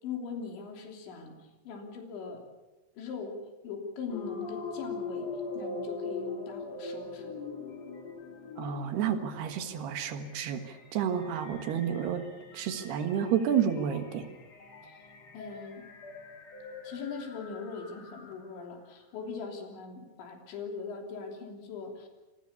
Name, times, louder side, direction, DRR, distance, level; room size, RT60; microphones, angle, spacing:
voice 1, 0.0-1.4 1.7-2.4 3.0-7.4 14.8-15.0 15.3-15.9 16.8-22.1, left 5 dB, 80° left, 3 dB, 5.5 m, -40 dB
sound 1, 4.1-18.7, left 4 dB, 45° left, 3.0 m, -42 dB
voice 2, 8.6-12.3 12.5-14.3, right 8 dB, 70° right, 8 dB, 3.4 m, -30 dB
28.0 x 21.0 x 7.0 m, 1.1 s
omnidirectional pair, 5.2 m